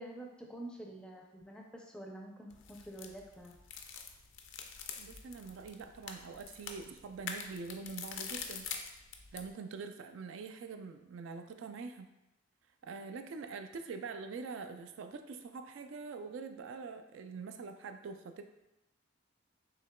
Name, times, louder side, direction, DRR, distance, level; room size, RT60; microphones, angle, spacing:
voice 1, 0.0-3.6, right 1 dB, 5° left, 0 dB, 0.4 m, -47 dB
sound 1, 2.5-9.5, left 6 dB, 70° left, 0.4 m, -45 dB
voice 2, 5.0-8.7 9.3-12.1 12.8-18.5, right 4 dB, 70° right, 7 dB, 0.3 m, -44 dB
6.6 x 2.9 x 2.2 m, 0.92 s
head